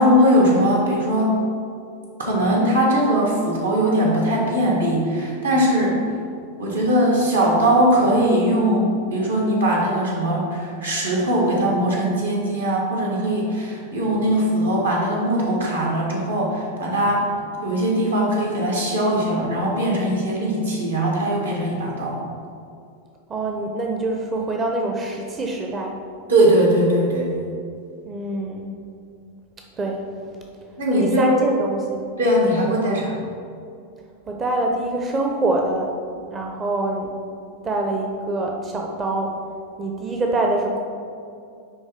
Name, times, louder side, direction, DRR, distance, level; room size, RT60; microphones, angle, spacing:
voice 1, 0.0-1.4 2.2-6.0 6.6-17.3 17.6-22.2 26.3-27.3 30.8-31.4 32.2-33.1, equal, 75° right, -3 dB, 1.5 m, -20 dB
voice 2, 23.3-25.9 28.1-28.7 29.8-30.0 31.0-32.1 34.3-35.9 36.3-37.1 37.6-39.3 39.8-40.8, right 2 dB, 20° right, 1 dB, 0.6 m, -25 dB
9.5 x 3.2 x 3.6 m, 2.4 s
figure-of-eight pair, 90°, 0 cm